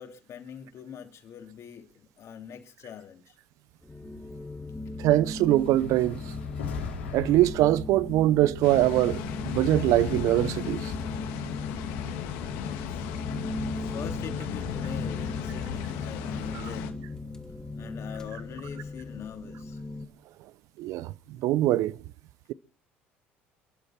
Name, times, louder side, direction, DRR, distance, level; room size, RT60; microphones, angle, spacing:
voice 1, 0.0-3.4 12.5-13.1 13.7-17.0 17.8-19.8, left 8 dB, 50° left, 2.9 m, -43 dB
sound 1, 3.8-20.0, left 2 dB, 10° left, 2.5 m, -38 dB
voice 2, 5.0-6.2 7.1-10.9 20.8-22.0, right 15 dB, 65° right, 0.7 m, -23 dB
sound 2, 5.5-9.7, left 6 dB, 85° left, 3.5 m, -40 dB
sound 3, 8.6-16.9, left 9 dB, 70° left, 2.1 m, -35 dB
28.5 x 11.0 x 4.3 m
hypercardioid pair, 65°, 6 cm